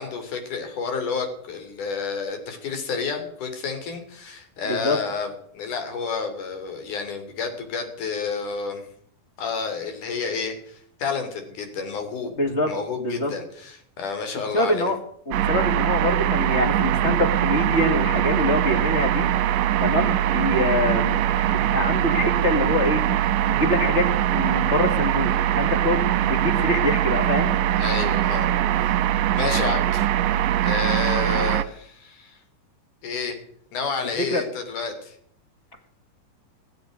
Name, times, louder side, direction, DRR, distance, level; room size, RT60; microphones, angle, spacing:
voice 1, 0.0-5.3 5.5-8.8 9.4-12.3 12.7-14.9 27.8-28.5 28.8-28.9 29.4-30.1 30.6-32.4 33.0-33.4 33.7-35.2, left 5 dB, 65° left, 6 dB, 4.5 m, -30 dB
voice 2, 4.6-5.0 12.4-13.3 14.5-15.0 15.3-19.3 19.8-23.1 23.4-27.5 34.2-34.4, left 2 dB, 30° left, 6 dB, 1.5 m, -25 dB
sound 1, 15.3-31.7, right 12 dB, 85° right, 2.5 m, -22 dB
18.0 x 8.0 x 9.4 m, 0.64 s
omnidirectional pair, 3.8 m